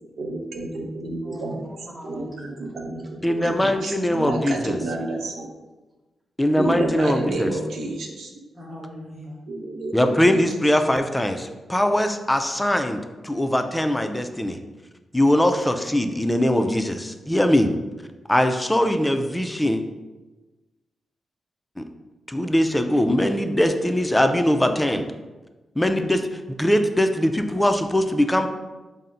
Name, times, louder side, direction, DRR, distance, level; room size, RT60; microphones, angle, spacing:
voice 1, 0.2-1.7 2.0-5.5 6.5-8.3 9.5-10.5, right 2 dB, 85° right, 1 dB, 0.6 m, -29 dB
voice 2, 1.2-3.1 8.5-9.4, equal, 10° right, -3 dB, 0.9 m, -39 dB
voice 3, 3.2-4.8 6.4-7.5 9.9-14.6 15.1-17.7 18.3-19.8 21.8-21.9 22.3-25.1 25.8-28.5, left 1 dB, 10° left, 7 dB, 0.3 m, -21 dB
5.5 x 2.0 x 3.8 m, 1.2 s
cardioid pair, 105°, 0 cm